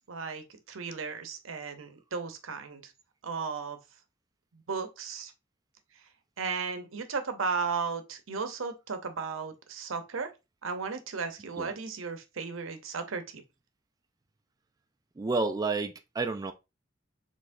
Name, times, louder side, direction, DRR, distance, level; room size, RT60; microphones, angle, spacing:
voice 1, 0.1-2.9 3.2-3.8 4.5-5.3 6.4-10.3 10.6-13.4, right 5 dB, 85° right, 0.7 m, -35 dB
voice 2, 15.2-16.5, right 3 dB, 20° right, 0.3 m, -30 dB
4.3 x 3.3 x 2.6 m
head